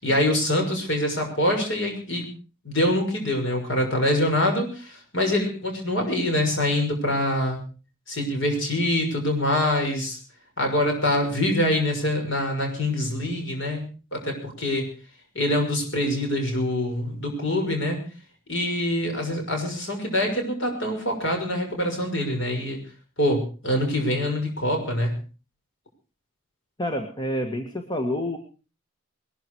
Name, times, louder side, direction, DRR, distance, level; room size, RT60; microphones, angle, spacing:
voice 1, 0.0-2.3 2.6-7.6 8.1-10.2 10.6-13.8 14.1-14.9 15.3-18.0 18.5-22.8 23.2-25.1, left 1 dB, 65° left, 3 dB, 6.2 m, -25 dB
voice 2, 26.8-28.4, left 1 dB, 20° left, 5 dB, 1.7 m, -28 dB
21.0 x 13.5 x 4.8 m, 0.36 s
head